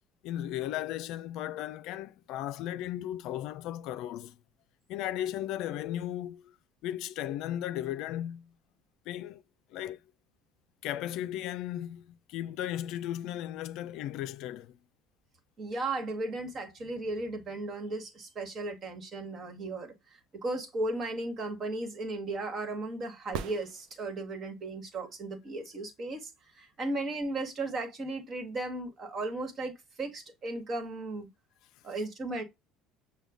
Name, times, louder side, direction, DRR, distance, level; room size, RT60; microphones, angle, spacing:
voice 1, 0.2-4.4 4.9-6.6 6.8-8.5 9.1-9.4 9.7-10.0 10.8-14.8, left 12 dB, 70° left, 0.4 m, -36 dB
voice 2, 15.6-31.3 31.8-32.4, right 2 dB, 45° right, 1.4 m, -36 dB
sound 1, 23.3-24.5 28.3-28.4, right 7 dB, 70° right, 0.5 m, -40 dB
6.7 x 2.2 x 3.5 m
hypercardioid pair, 80°, 0 cm